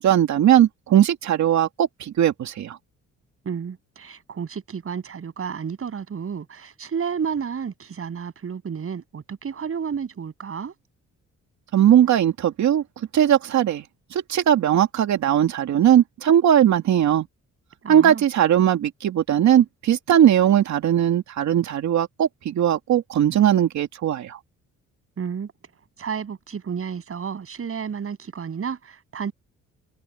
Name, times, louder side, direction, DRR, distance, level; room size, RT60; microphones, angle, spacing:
voice 1, 0.0-2.8 11.7-12.8 13.1-13.8 14.1-17.3 17.9-24.4, right 10 dB, 70° right, 2.6 m, -19 dB
voice 2, 3.4-10.7 17.8-18.2 25.2-25.5 26.0-29.3, right 6 dB, 45° right, 7.7 m, -31 dB
cardioid pair, 90°, 30 cm